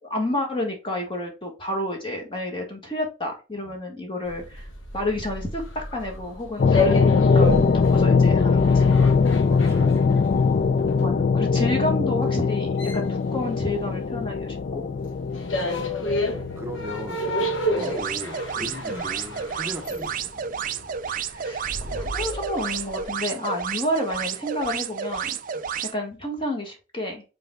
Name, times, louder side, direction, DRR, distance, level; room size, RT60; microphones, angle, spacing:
voice 1, 0.0-4.7 4.9-8.8 10.9-14.9 17.8-17.9 18.9-19.0 21.1-25.4 25.9-27.2, left 1 dB, 25° left, 1.4 m, -30 dB
sound 1, 4.3-14.3 14.6-23.0, left 1 dB, 60° left, 1.2 m, -31 dB
sound 2, 6.6-18.4, left 5 dB, 40° left, 0.3 m, -21 dB
voice 2, 9.2-10.7 15.0-15.1 16.6-20.3 25.5-25.7, left 1 dB, 15° right, 1.0 m, -38 dB
sound 3, 17.8-25.9, right 7 dB, 40° right, 0.3 m, -31 dB
5.3 x 4.4 x 2.2 m
head